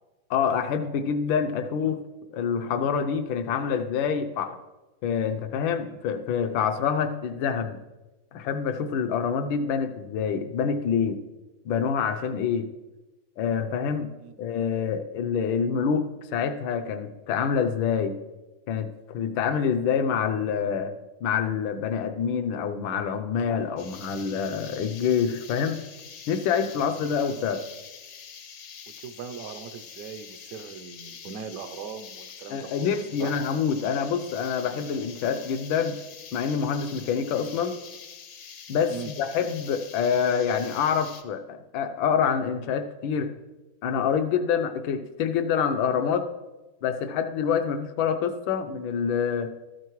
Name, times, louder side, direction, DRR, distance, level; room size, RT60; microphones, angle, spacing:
voice 1, 0.3-2.0 2.3-4.5 5.0-7.8 8.3-11.2 11.6-12.7 13.4-14.1 14.4-18.2 18.7-20.9 21.2-25.8 26.3-27.6 32.5-36.0 36.3-37.8 38.7-43.3 43.8-46.3 46.8-49.5, left 7 dB, 80° left, 8 dB, 1.4 m, -26 dB
sound 1, 23.8-41.2, left 7 dB, 60° left, 0.8 m, -45 dB
voice 2, 29.0-32.9 33.2-33.3 38.9-39.1, right 6 dB, 70° right, 8 dB, 0.8 m, -39 dB
13.0 x 9.4 x 3.1 m, 1.1 s
omnidirectional pair, 2.2 m